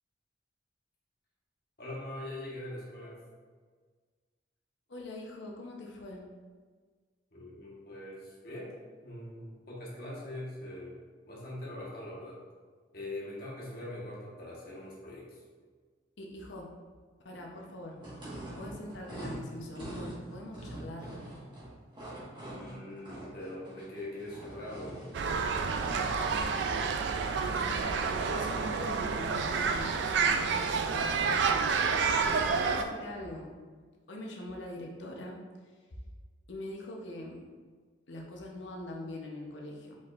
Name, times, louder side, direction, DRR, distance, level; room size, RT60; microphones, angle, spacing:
voice 1, 1.8-3.2 7.3-8.8 9.0-11.0 11.3-12.4 12.9-15.4 22.4-25.7, left 1 dB, 55° left, -5 dB, 1.3 m, -42 dB
voice 2, 4.9-6.2 16.2-16.7 17.2-18.0 18.6-21.1 27.4-27.9 28.3-30.5 30.9-31.4 32.2-33.5 34.1-35.4 36.5-37.4 38.1-40.0, left 1 dB, 80° left, 0 dB, 0.8 m, -43 dB
sound 1, 18.0-26.1, right 1 dB, 25° right, 1.3 m, -44 dB
sound 2, 25.1-32.8, right 5 dB, 70° right, 0.3 m, -29 dB
4.7 x 4.3 x 2.4 m, 1.5 s
head